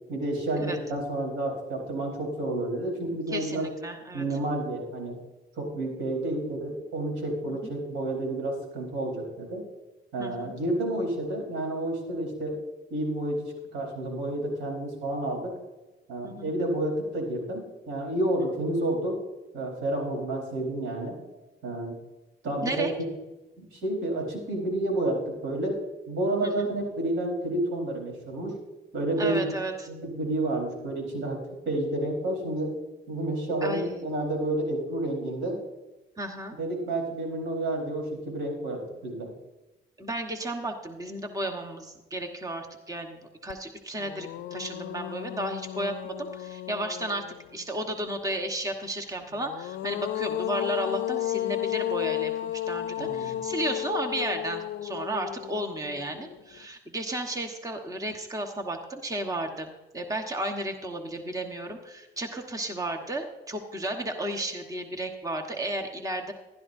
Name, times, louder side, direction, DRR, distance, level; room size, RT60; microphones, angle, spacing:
voice 1, 0.1-3.7 4.1-5.2 5.6-9.6 10.1-12.5 12.9-15.5 16.1-19.2 19.5-21.1 21.6-22.0 22.4-23.1 23.6-25.7 26.1-28.5 28.9-29.4 29.9-31.4 31.7-32.7 33.1-35.6 36.6-39.3 53.0-53.4, right 1 dB, 85° right, 1 dB, 4.2 m, -30 dB
voice 2, 3.3-4.2 10.2-10.5 16.2-16.5 18.4-18.5 22.6-22.9 26.4-26.7 29.2-29.9 33.6-34.0 36.2-36.5 40.0-47.3 47.5-66.3, right 1 dB, 15° right, 4 dB, 1.2 m, -33 dB
sound 1, 43.5-43.6 44.0-47.6 49.3-56.6, left 13 dB, 75° left, 0.4 m, -33 dB
15.5 x 12.0 x 2.7 m, 1.1 s
cardioid pair, 90°, 20 cm